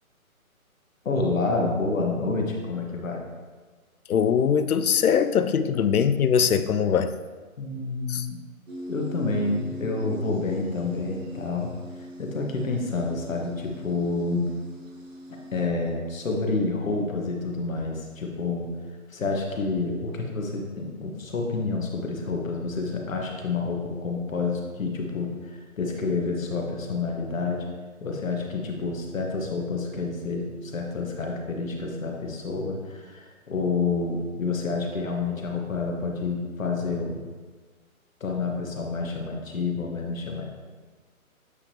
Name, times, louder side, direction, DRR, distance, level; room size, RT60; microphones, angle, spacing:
voice 1, 1.0-3.2 7.6-8.4 8.9-11.7 12.2-14.5 15.5-18.7 19.1-27.7 28.0-37.2 38.2-40.4, left 3 dB, 65° left, 1 dB, 1.5 m, -28 dB
voice 2, 4.1-7.1 8.1-8.3, left 7 dB, 85° left, 11 dB, 0.6 m, -22 dB
sound 1, 8.7-15.7, equal, 65° right, 1.8 m, -40 dB
8.2 x 5.0 x 2.9 m, 1.4 s
hypercardioid pair, 170°, 42 cm